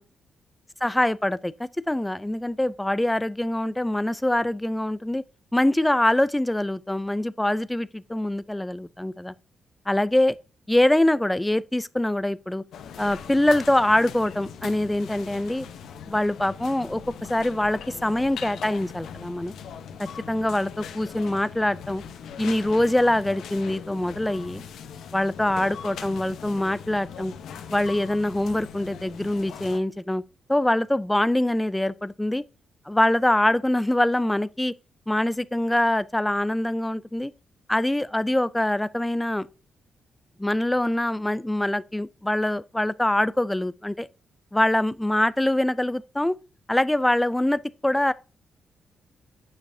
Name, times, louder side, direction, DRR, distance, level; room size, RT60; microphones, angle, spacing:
voice 1, 0.8-5.2 5.5-9.3 9.9-10.4 10.7-12.6 13.0-15.7 16.1-17.0 17.3-19.5 20.0-22.0 22.4-24.6 25.1-27.3 27.7-30.2 30.5-32.4 32.9-34.7 35.1-37.3 37.7-39.5 40.4-44.1 44.5-46.4 46.7-48.1, left 1 dB, 10° left, 0.4 m, -24 dB
sound 1, 12.7-29.8, left 7 dB, 85° left, 0.8 m, -40 dB
8.8 x 5.3 x 2.7 m
cardioid pair, 100°, 0 cm